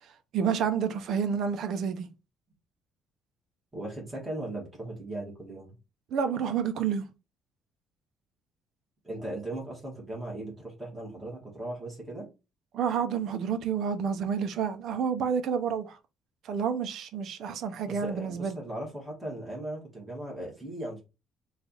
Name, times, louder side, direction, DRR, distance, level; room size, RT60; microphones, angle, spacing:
voice 1, 0.0-2.1 6.1-7.1 12.7-16.0 16.4-18.6, right 7 dB, 55° right, 0.5 m, -29 dB
voice 2, 3.7-5.7 9.0-12.3 17.9-21.0, right 1 dB, 5° right, 1.3 m, -38 dB
3.2 x 2.3 x 3.9 m
cardioid pair, 170°, 0 cm